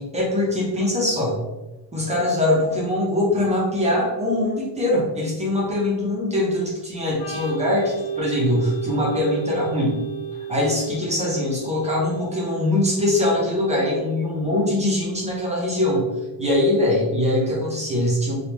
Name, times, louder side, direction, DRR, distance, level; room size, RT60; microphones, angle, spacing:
voice 1, 0.0-1.4 1.9-9.9 10.5-16.1 16.4-18.3, left 1 dB, 15° right, -4 dB, 0.6 m, -22 dB
Organ, 7.1-14.6, right 7 dB, 50° left, 0.7 m, -33 dB
3.4 x 2.3 x 2.9 m, 1.1 s
cardioid pair, 170°, 45 cm